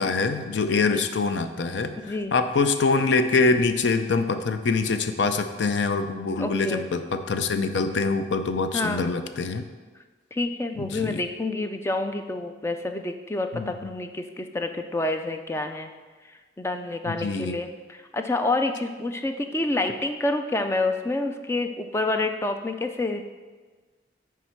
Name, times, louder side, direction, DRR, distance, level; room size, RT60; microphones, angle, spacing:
voice 1, 0.0-2.0 2.3-9.6 10.8-11.2 13.5-13.7 17.1-17.6, left 4 dB, 80° left, 9 dB, 0.5 m, -24 dB
voice 2, 6.4-6.8 8.7-9.1 10.3-15.9 16.6-23.3, left 2 dB, 15° left, 6 dB, 0.3 m, -28 dB
9.8 x 3.6 x 4.5 m, 1.4 s
head